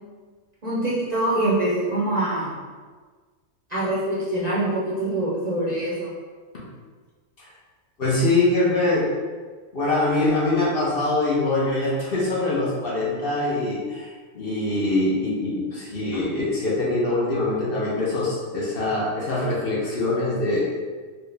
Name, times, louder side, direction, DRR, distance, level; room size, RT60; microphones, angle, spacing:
voice 1, 0.6-2.5 3.7-6.1, right 1 dB, 40° right, -8 dB, 0.6 m, -24 dB
voice 2, 8.0-9.1 9.7-20.6, left 2 dB, 50° left, -5 dB, 0.9 m, -23 dB
4.4 x 2.2 x 3.3 m, 1.5 s
omnidirectional pair, 1.4 m